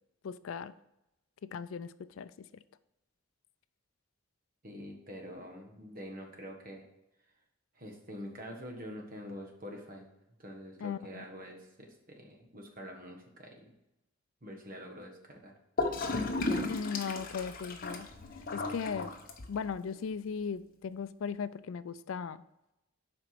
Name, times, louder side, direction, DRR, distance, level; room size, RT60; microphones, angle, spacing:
voice 1, 0.2-0.7 1.4-2.5 10.8-11.2 16.7-18.1 18.5-19.1 19.5-22.4, left 6 dB, 70° left, 15 dB, 0.4 m, -37 dB
voice 2, 4.6-6.8 7.7-10.1 10.4-13.7 14.4-15.5, equal, 40° right, 2 dB, 1.5 m, -46 dB
Gurgling / Toilet flush, 15.8-19.8, left 2 dB, 45° left, 1.0 m, -34 dB
7.8 x 5.1 x 5.8 m, 0.90 s
head